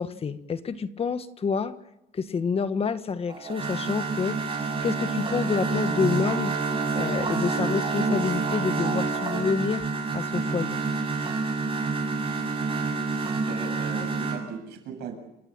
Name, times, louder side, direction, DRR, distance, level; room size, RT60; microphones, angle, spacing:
voice 1, 0.0-1.7 2.1-6.5 6.9-9.9 10.1-10.8, left 5 dB, 35° left, 11 dB, 1.5 m, -28 dB
sound 1, 3.3-14.4, right 4 dB, 30° right, 7.5 m, -28 dB
voice 2, 13.3-15.1, right 7 dB, 80° right, 4 dB, 8.0 m, -37 dB
29.5 x 15.0 x 9.1 m, 0.90 s
cardioid pair, 110°, 17 cm